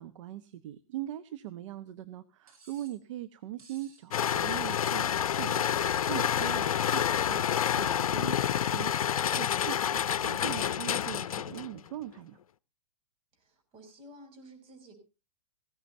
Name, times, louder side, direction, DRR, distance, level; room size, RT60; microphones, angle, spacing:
voice 1, 0.0-12.4, right 13 dB, 60° right, 12 dB, 1.0 m, -41 dB
Cutlery silverware, 2.5-3.0 3.6-4.0 4.6-5.2 5.8-6.3 6.9-7.4 8.2-8.6, right 5 dB, 80° right, 7.6 m, -58 dB
sound 1, 4.1-11.8, left 9 dB, 80° left, 0.7 m, -28 dB
voice 2, 13.3-15.0, right 1 dB, 30° right, 5 dB, 6.5 m, -52 dB
18.5 x 16.0 x 2.7 m, 0.31 s
hypercardioid pair, 125°, 18 cm